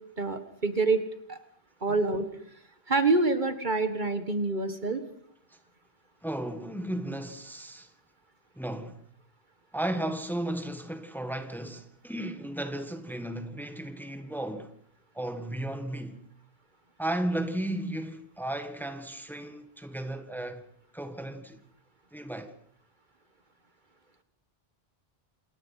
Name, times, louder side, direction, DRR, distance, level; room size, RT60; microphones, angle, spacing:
voice 1, 0.2-1.0 1.3-1.4 1.8-2.3 2.9-5.0, right 3 dB, 50° right, 1.8 m, -26 dB
voice 2, 6.2-7.9 8.6-9.0 9.7-14.7 15.2-16.2 17.0-20.6 20.9-21.6 22.1-22.5, right 1 dB, ahead, 1.8 m, -34 dB
28.0 x 21.0 x 5.8 m
omnidirectional pair, 1.0 m